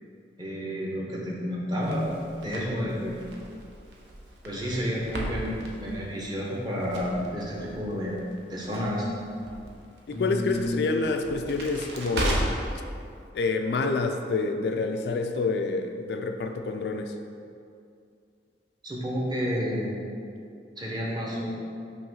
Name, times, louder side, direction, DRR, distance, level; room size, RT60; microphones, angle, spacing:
voice 1, 0.4-3.2 4.4-5.5 5.8-8.2 8.5-9.1 10.1-10.8 18.8-19.9 20.8-21.5, equal, 25° right, -4 dB, 1.0 m, -30 dB
Crackle, 1.8-12.7, right 1 dB, 75° right, 0.8 m, -36 dB
voice 2, 10.1-12.5 13.3-17.1, left 3 dB, 65° left, 5 dB, 0.3 m, -28 dB
5.6 x 3.1 x 5.4 m, 2.4 s
head